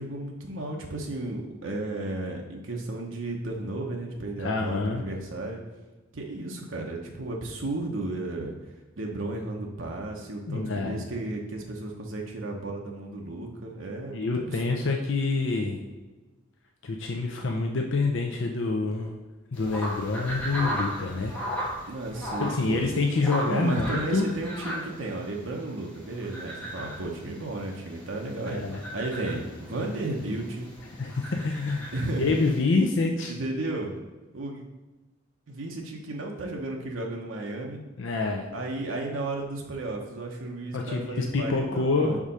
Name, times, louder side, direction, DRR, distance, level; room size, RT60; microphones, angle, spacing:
voice 1, 0.0-5.6 6.1-8.5 9.0-14.8 21.9-22.9 23.5-30.7 31.9-32.5 33.3-33.9 34.3-34.6 35.5-37.8 38.5-42.2, right 2 dB, 80° right, 0 dB, 0.9 m, -33 dB
voice 2, 4.4-5.1 10.5-11.0 14.1-15.8 16.8-19.1 19.5-21.3 21.8-21.9 22.4-24.3 28.4-28.8 31.0-31.9 32.2-33.3 38.0-38.5 40.7-42.2, left 3 dB, 70° left, 1 dB, 0.6 m, -27 dB
sound 1, 19.5-32.6, equal, 10° left, 1.3 m, -37 dB
4.8 x 3.7 x 5.5 m, 1.2 s
head